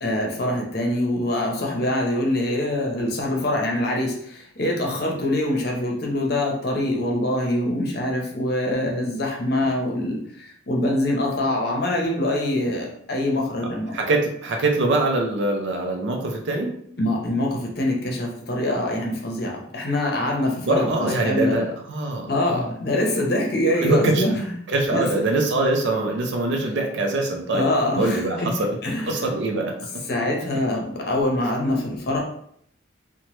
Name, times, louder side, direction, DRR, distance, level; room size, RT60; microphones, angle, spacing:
voice 1, 0.0-14.0 17.0-21.7 22.3-24.5 24.9-25.1 27.5-28.5 28.8-29.1 30.1-32.2, left 1 dB, 55° left, 0 dB, 0.7 m, -24 dB
voice 2, 13.9-16.7 20.6-22.7 23.8-24.2 24.7-27.7 28.0-28.8 29.1-29.7, right 2 dB, 65° right, 3 dB, 0.4 m, -23 dB
2.9 x 2.1 x 3.0 m, 0.68 s
head